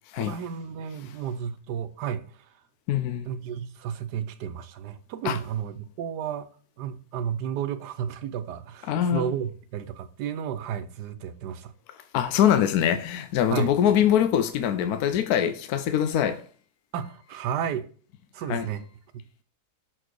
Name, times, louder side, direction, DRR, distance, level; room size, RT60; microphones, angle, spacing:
voice 1, 0.2-2.6 3.2-6.5 6.8-11.7 13.5-13.7 16.9-17.9 18.3-18.8, right 8 dB, 85° right, 1.3 m, -32 dB
voice 2, 2.9-3.2 5.2-5.4 8.9-9.2 12.1-16.4 18.5-18.7, left 10 dB, 75° left, 1.1 m, -23 dB
6.3 x 4.6 x 4.6 m
omnidirectional pair, 1.7 m